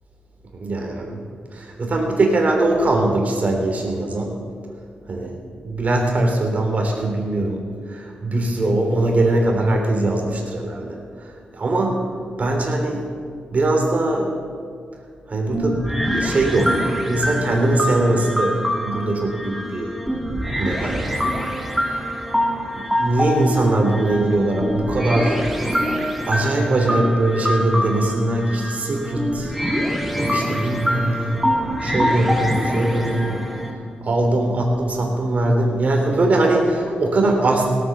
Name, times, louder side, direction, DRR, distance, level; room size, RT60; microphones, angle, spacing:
voice 1, 0.5-1.2 1.5-4.4 5.1-5.3 5.7-7.6 7.9-11.3 11.5-12.1 12.4-13.0 13.5-14.3 15.3-15.8 16.2-20.0 20.6-21.0 22.7-25.4 26.3-29.5 30.2-31.4 31.8-33.4 34.0-37.7, right 2 dB, 50° right, 1 dB, 3.4 m, -21 dB
sound 1, 15.5-33.7, equal, 5° right, 2.4 m, -25 dB
17.0 x 9.1 x 6.9 m, 2.1 s
cardioid pair, 75°, 3 cm